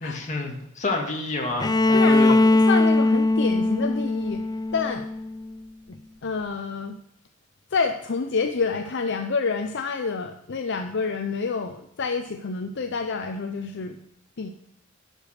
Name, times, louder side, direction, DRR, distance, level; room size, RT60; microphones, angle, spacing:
voice 1, 0.0-2.4, left 2 dB, 35° left, 1 dB, 2.0 m, -29 dB
Bowed string instrument, 1.6-5.5, left 2 dB, 20° left, 0.3 m, -20 dB
voice 2, 1.9-4.4 4.7-5.1 5.9-7.0 7.7-14.0 14.4-14.5, left 4 dB, 60° left, 6 dB, 0.6 m, -28 dB
11.5 x 5.1 x 6.6 m, 0.74 s
head